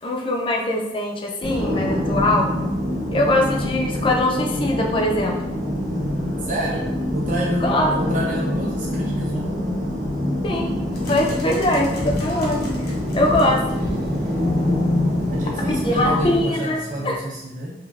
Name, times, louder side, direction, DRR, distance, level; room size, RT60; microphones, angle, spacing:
voice 1, 0.0-2.5 3.1-5.4 7.6-7.9 10.4-10.8 11.1-12.7 13.1-13.6 15.7-16.8 17.0-17.2, left 1 dB, 30° left, 1 dB, 0.4 m, -22 dB
sound 1, 1.4-16.4, left 1 dB, 20° right, 1.0 m, -25 dB
voice 2, 6.4-7.7 8.0-9.6 15.3-17.7, right 1 dB, 45° right, -5 dB, 0.6 m, -28 dB
sound 2, 10.9-17.2, left 1 dB, 65° left, 0.7 m, -35 dB
3.2 x 2.4 x 2.3 m, 0.94 s
head